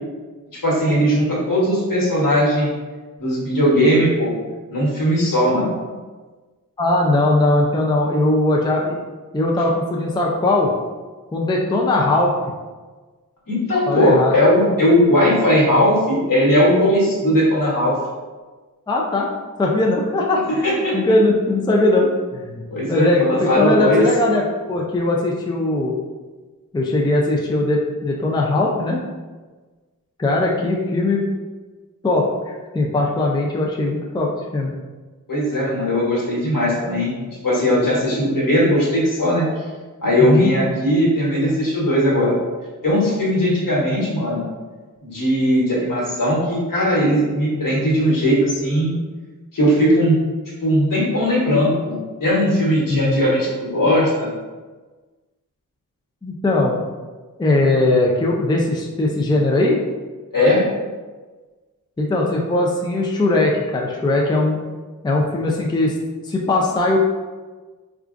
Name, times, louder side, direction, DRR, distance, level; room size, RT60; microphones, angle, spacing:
voice 1, 0.5-2.7 3.2-4.3 4.7-5.7 13.5-17.9 20.6-21.0 22.7-24.1 35.3-39.4 40.0-42.3 42.8-44.4 45.0-48.9 49.5-50.2 50.6-54.3 60.3-60.6, equal, 70° left, -5 dB, 1.2 m, -18 dB
voice 2, 6.8-9.0 9.3-10.7 11.3-12.4 13.9-14.3 18.9-19.3 19.6-25.9 26.7-29.0 30.2-31.2 32.0-34.7 40.2-40.5 52.9-53.2 56.2-56.8 57.4-59.8 62.0-64.6 65.0-65.9 66.2-67.0, left 2 dB, 15° left, -2 dB, 0.4 m, -19 dB
4.5 x 2.4 x 2.5 m, 1.3 s
wide cardioid pair, 70°, 34 cm